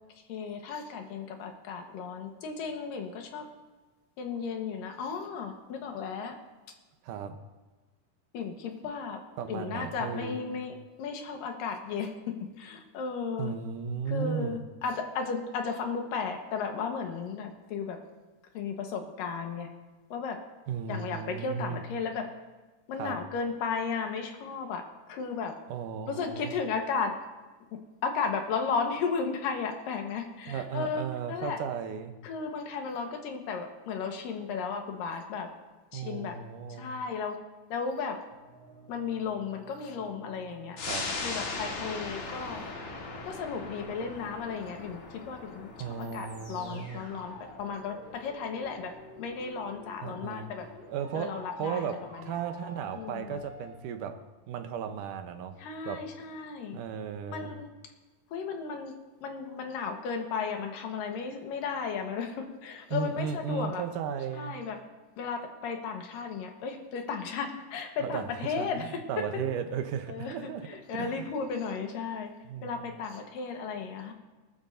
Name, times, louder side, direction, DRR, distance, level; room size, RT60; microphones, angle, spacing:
voice 1, 0.3-3.5 4.2-6.4 8.3-9.2 9.5-13.5 14.1-18.0 18.5-19.7 20.1-20.4 20.9-22.3 22.9-24.8 25.1-25.5 26.1-27.1 27.7-31.6 32.2-35.5 35.9-36.4 36.7-37.4 37.7-38.2 38.9-40.8 41.2-42.6 43.2-48.9 49.2-50.7 51.1-52.4 52.9-53.4 55.6-56.8 57.3-57.7 58.3-58.9 59.2-63.8 64.3-64.8 65.2-69.0 70.1-72.3 72.6-74.1, left 5 dB, 85° left, 4 dB, 3.0 m, -34 dB
voice 2, 7.0-7.4 9.4-10.6 13.4-14.6 20.7-21.9 23.0-23.2 25.7-26.5 30.5-32.2 35.9-36.9 40.9-41.1 45.8-47.1 50.0-50.5 50.9-54.2 54.5-55.6 55.9-56.0 56.7-57.5 62.9-64.6 68.0-68.3 68.6-71.3 72.5-72.8, right 7 dB, 75° right, 7 dB, 2.4 m, -35 dB
sound 1, 38.3-53.7, right 1 dB, 40° left, 6.0 m, -52 dB
sound 2, 40.8-51.7 52.1-52.2, left 3 dB, 60° left, 2.9 m, -40 dB
20.0 x 12.5 x 2.7 m, 1.2 s
omnidirectional pair, 3.9 m